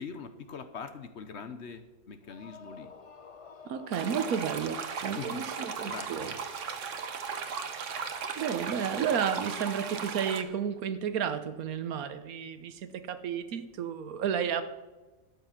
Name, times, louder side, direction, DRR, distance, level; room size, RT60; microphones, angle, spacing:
voice 1, 0.0-2.9 5.2-5.5 5.9-6.3, left 6 dB, 55° left, 10 dB, 1.0 m, -42 dB
sound 1, 2.2-6.2, left 5 dB, 40° left, 0.5 m, -51 dB
voice 2, 3.6-6.3 8.4-14.6, right 8 dB, 85° right, 11 dB, 1.3 m, -32 dB
sound 2, 3.9-10.4, right 6 dB, 60° right, 1.3 m, -37 dB
12.0 x 9.1 x 5.8 m, 1.2 s
omnidirectional pair, 1.5 m